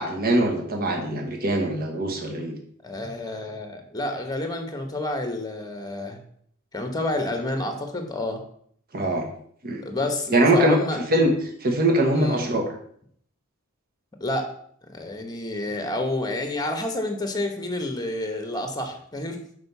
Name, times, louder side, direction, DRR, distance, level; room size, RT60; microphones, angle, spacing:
voice 1, 0.0-2.6 8.9-9.3 9.6-9.8 10.3-10.8 11.1-11.3 11.6-12.7, right 1 dB, 45° right, 2 dB, 1.2 m, -22 dB
voice 2, 2.8-6.2 6.7-8.4 9.8-11.0 12.1-12.4 14.2-14.5 14.9-19.4, left 1 dB, 20° left, 5 dB, 1.1 m, -29 dB
6.5 x 4.7 x 5.5 m, 0.63 s
head